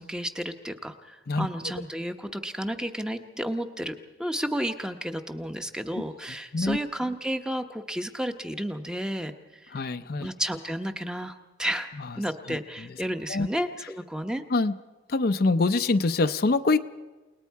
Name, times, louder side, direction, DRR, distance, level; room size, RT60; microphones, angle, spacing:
voice 1, 0.0-9.3 10.2-11.3 11.6-11.9 12.2-14.4, equal, 5° right, 7 dB, 0.9 m, -32 dB
voice 2, 9.7-10.3 12.5-12.6 13.3-13.5 14.5-14.8 15.1-16.8, left 3 dB, 55° left, 10 dB, 0.6 m, -24 dB
29.5 x 19.5 x 4.7 m, 1.2 s
head